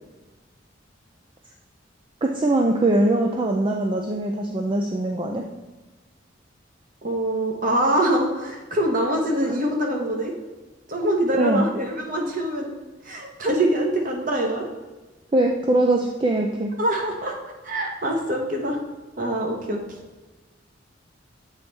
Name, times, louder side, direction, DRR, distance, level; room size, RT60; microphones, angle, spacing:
voice 1, 2.2-5.4 9.5-9.6 11.4-11.7 15.3-16.7, right 1 dB, 25° right, 1 dB, 0.4 m, -22 dB
voice 2, 7.0-10.3 10.9-12.7 13.0-14.6 16.8-17.3 17.6-18.8 19.2-19.8, right 1 dB, 45° right, 1 dB, 1.1 m, -24 dB
8.0 x 4.1 x 3.4 m, 1.2 s
head